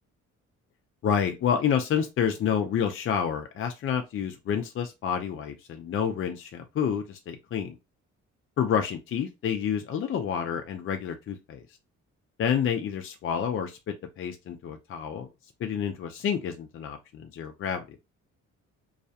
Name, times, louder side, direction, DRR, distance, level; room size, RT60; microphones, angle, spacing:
voice 1, 1.0-7.7 8.6-11.6 12.4-15.3 15.6-18.0, left 8 dB, 45° left, 0.4 m, -29 dB
2.3 x 2.1 x 2.7 m
cardioid pair, 90°, 30 cm